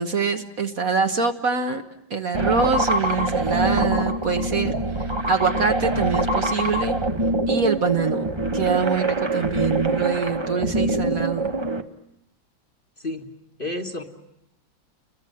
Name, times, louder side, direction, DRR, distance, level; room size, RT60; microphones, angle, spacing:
voice 1, 0.0-1.8 2.1-4.7 5.0-7.0 7.5-8.2 8.5-11.5, right 5 dB, 50° right, 6 dB, 1.5 m, -24 dB
sound 1, 2.3-11.8, right 2 dB, 20° right, 0.8 m, -24 dB
voice 2, 13.6-14.0, left 2 dB, 30° left, 4 dB, 1.6 m, -30 dB
30.0 x 22.5 x 7.8 m, 0.79 s
omnidirectional pair, 2.1 m